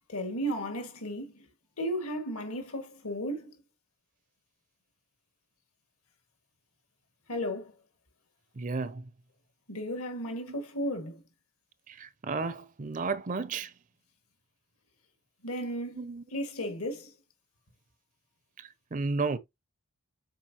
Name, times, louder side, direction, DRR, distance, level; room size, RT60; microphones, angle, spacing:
voice 1, 0.1-1.5 1.8-3.5 7.3-7.7 9.7-11.2 15.4-17.1, equal, 75° left, 1.9 m, -34 dB
voice 2, 8.5-9.1 11.9-13.7 15.9-16.2 18.6-19.4, right 4 dB, 35° right, 0.5 m, -33 dB
7.5 x 4.6 x 2.8 m
head